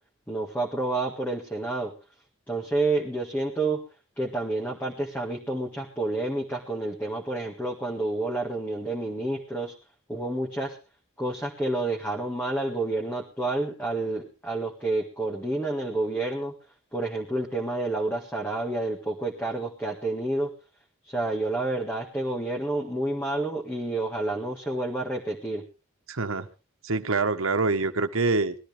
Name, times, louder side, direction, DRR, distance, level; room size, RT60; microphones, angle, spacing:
voice 1, 0.3-1.9 2.5-3.8 4.2-9.7 10.1-10.8 11.2-16.5 16.9-20.5 21.0-25.6, right 2 dB, 10° left, -1 dB, 1.8 m, -29 dB
voice 2, 26.1-26.5 26.8-28.6, right 3 dB, 80° right, 8 dB, 1.3 m, -25 dB
21.0 x 13.0 x 3.4 m, 0.31 s
head